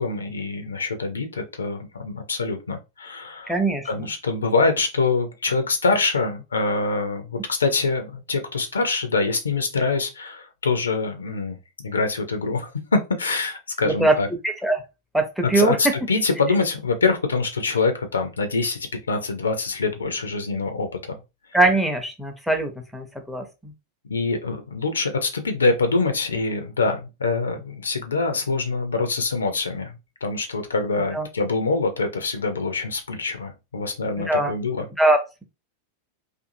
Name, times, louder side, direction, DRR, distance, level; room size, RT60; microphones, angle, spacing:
voice 1, 0.0-3.6 3.9-14.3 15.4-21.2 24.1-29.9 30.2-34.8, left 3 dB, 70° left, 0.4 m, -25 dB
voice 2, 3.5-4.1 13.9-14.1 14.6-14.8 15.1-15.8 21.5-23.7 31.1-31.3 34.2-34.5 35.0-35.4, right 2 dB, ahead, 0.6 m, -22 dB
2.5 x 2.5 x 2.5 m
figure-of-eight pair, 90°, 0 cm